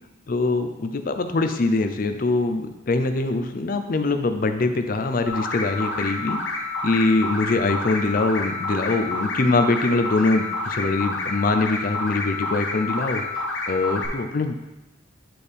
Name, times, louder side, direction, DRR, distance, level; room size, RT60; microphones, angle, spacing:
voice 1, 0.3-6.4 6.8-13.2 13.7-14.6, left 3 dB, 45° left, 8 dB, 0.5 m, -23 dB
sound 1, 5.3-14.1, left 2 dB, 70° left, 1.0 m, -29 dB
9.2 x 4.3 x 3.4 m, 1.0 s
head